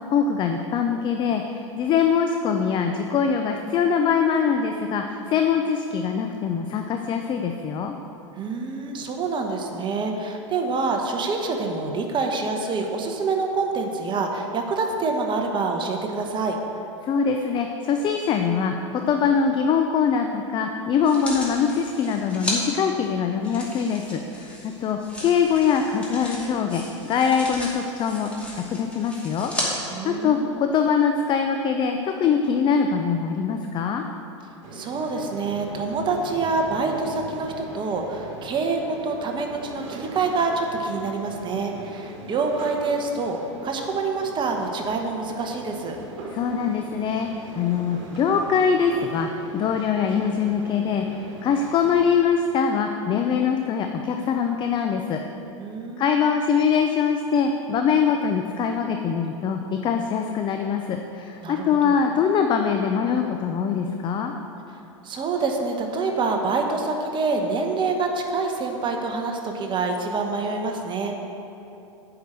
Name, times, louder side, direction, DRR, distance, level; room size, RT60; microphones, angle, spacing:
voice 1, 0.1-7.9 17.0-28.3 28.7-34.0 46.3-55.2 56.0-64.3, left 6 dB, 30° left, 5 dB, 0.6 m, -23 dB
voice 2, 8.4-16.6 29.9-30.6 34.7-46.0 55.6-56.1 61.4-62.0 65.0-71.2, right 4 dB, 30° right, 3 dB, 1.2 m, -26 dB
sound 1, 21.0-22.6 23.4-29.7 30.3-30.4, left 1 dB, 5° left, 2.5 m, -35 dB
sound 2, 34.6-52.1, right 2 dB, 45° right, 2.4 m, -40 dB
8.4 x 5.9 x 7.6 m, 2.9 s
hypercardioid pair, 100°, 16 cm